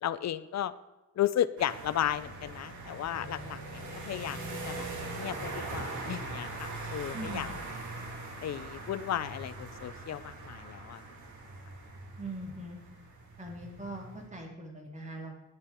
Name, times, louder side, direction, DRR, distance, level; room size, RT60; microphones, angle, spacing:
voice 1, 0.0-0.7 1.2-4.9 5.1-7.5 8.4-11.0, left 11 dB, 65° left, 13 dB, 0.7 m, -34 dB
sound 1, 1.6-14.3, right 2 dB, 90° right, 3.3 m, -41 dB
voice 2, 7.1-7.6 12.2-12.8 13.4-15.3, right 1 dB, 25° right, 1 dB, 3.4 m, -41 dB
18.5 x 8.7 x 4.6 m, 1.1 s
wide cardioid pair, 120°, 29 cm